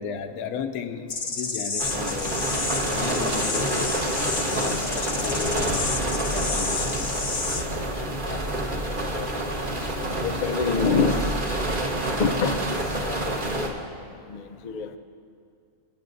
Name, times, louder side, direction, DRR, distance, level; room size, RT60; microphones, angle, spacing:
voice 1, 0.0-2.5 2.9-4.0 4.5-5.9 6.2-7.1, left 7 dB, 85° left, 8 dB, 1.1 m, -34 dB
sound 1, 1.1-7.6, left 4 dB, 40° left, 0.8 m, -30 dB
sound 2, 1.8-13.7, right 1 dB, 40° right, 1.3 m, -28 dB
Bell, 5.7-7.8, equal, 70° right, 3.9 m, -47 dB
voice 2, 8.0-8.4 9.1-9.3 10.0-11.3 12.2-12.8 13.1-14.0 14.3-15.0, left 5 dB, 70° left, 7 dB, 0.4 m, -27 dB
26.0 x 8.9 x 2.6 m, 2.3 s
omnidirectional pair, 1.5 m